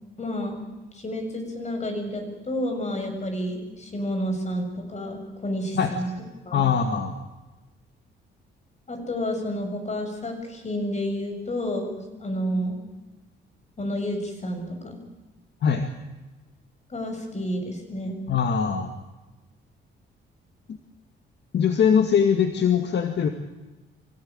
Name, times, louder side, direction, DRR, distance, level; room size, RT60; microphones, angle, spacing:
voice 1, 0.2-0.6 0.9-6.1 6.4-6.7 8.9-12.8 13.8-15.0 16.9-18.2, equal, 35° left, 5 dB, 7.3 m, -30 dB
voice 2, 6.5-7.2 15.6-15.9 18.3-18.9 21.5-23.3, left 7 dB, 60° left, 6 dB, 2.1 m, -21 dB
25.0 x 17.0 x 9.0 m, 1.1 s
cardioid pair, 90°, 20 cm